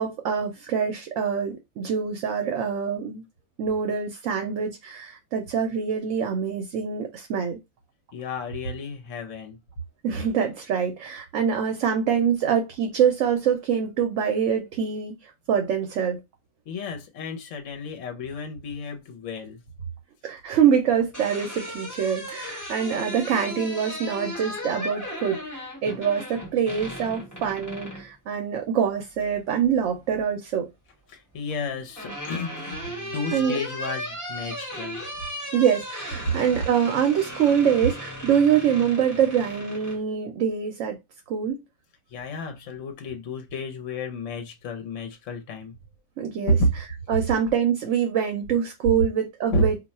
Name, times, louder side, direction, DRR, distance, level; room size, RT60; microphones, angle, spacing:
voice 1, 0.0-3.2 3.6-7.6 10.0-16.2 20.2-30.7 33.3-33.6 35.5-41.0 41.3-41.6 46.2-46.6 47.1-49.8, right 7 dB, 70° right, 0.9 m, -25 dB
voice 2, 8.1-9.6 16.7-19.6 31.1-35.0 36.3-36.7 42.1-45.7 46.5-46.7 49.5-49.7, equal, 70° left, 1.1 m, -30 dB
sound 1, 20.8-28.1 29.6-30.2 31.5-40.0, equal, 15° left, 1.2 m, -36 dB
2.5 x 2.2 x 4.0 m
omnidirectional pair, 1.4 m